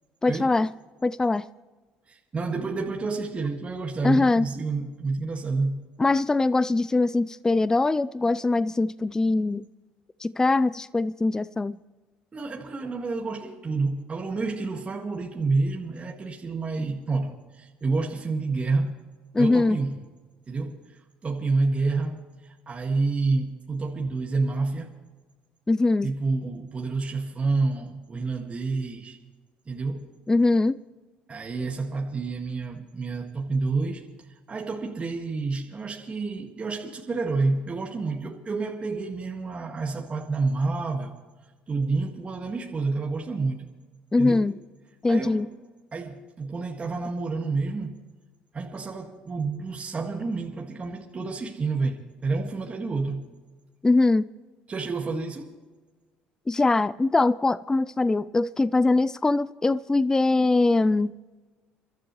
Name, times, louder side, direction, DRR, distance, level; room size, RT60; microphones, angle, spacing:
voice 1, 0.2-0.7 1.0-1.5 4.0-4.5 6.0-9.6 10.2-11.8 19.3-19.8 25.7-26.1 30.3-30.8 44.1-44.5 45.0-45.5 53.8-54.2 56.5-61.1, left 3 dB, 15° left, 0.4 m, -22 dB
voice 2, 2.1-5.8 12.3-19.0 19.4-20.0 20.5-24.9 26.0-29.2 29.7-30.1 31.3-41.1 41.7-43.7 44.2-44.5 45.1-45.5 45.9-48.0 48.5-53.2 54.7-55.5, right 3 dB, 30° right, 1.8 m, -29 dB
30.0 x 12.5 x 3.1 m
supercardioid pair, 75°, 4 cm